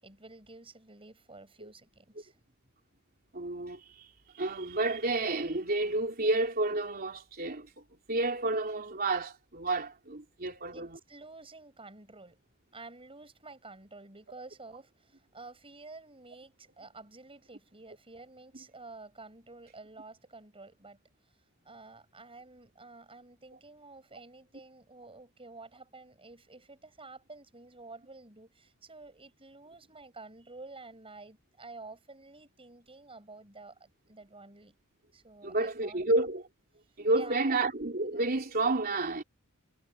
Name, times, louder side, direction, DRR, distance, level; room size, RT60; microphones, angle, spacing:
voice 1, 0.0-2.5 10.7-12.4 12.7-21.0 21.6-34.7 35.1-36.1 37.1-37.6, right 3 dB, 25° right, 6.9 m, -50 dB
voice 2, 3.3-4.1 4.3-11.0 35.4-36.5 37.0-39.2, right 2 dB, 45° right, 3.6 m, -30 dB
head